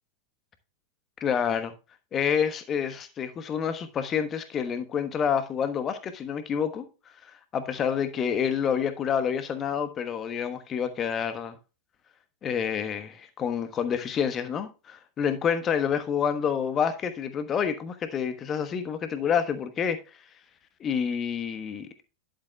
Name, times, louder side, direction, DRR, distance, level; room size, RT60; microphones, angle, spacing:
voice 1, 1.2-1.7 2.1-6.9 7.5-11.6 12.4-20.0 20.8-21.9, left 7 dB, 25° left, 1.2 m, -28 dB
11.0 x 7.7 x 2.2 m
figure-of-eight pair, 90°, 0 cm